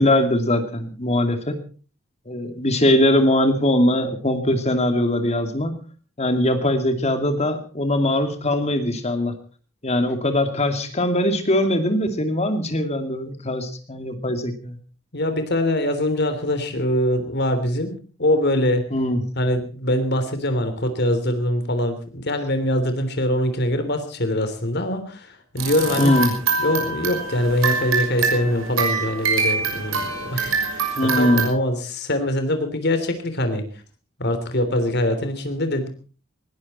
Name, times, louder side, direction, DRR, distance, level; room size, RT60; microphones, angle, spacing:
voice 1, 0.0-1.6 2.3-5.8 6.2-9.3 9.8-14.8 18.9-19.2 25.9-26.3 31.0-31.5, left 1 dB, 35° left, 7 dB, 2.5 m, -21 dB
voice 2, 15.1-18.8 19.4-25.3 25.5-26.1 26.6-30.9 31.2-33.6 34.2-35.9, left 1 dB, 55° left, 9 dB, 3.3 m, -23 dB
sound 1, 25.6-31.5, right 4 dB, 85° right, 6.3 m, -24 dB
20.0 x 17.0 x 4.3 m, 0.39 s
head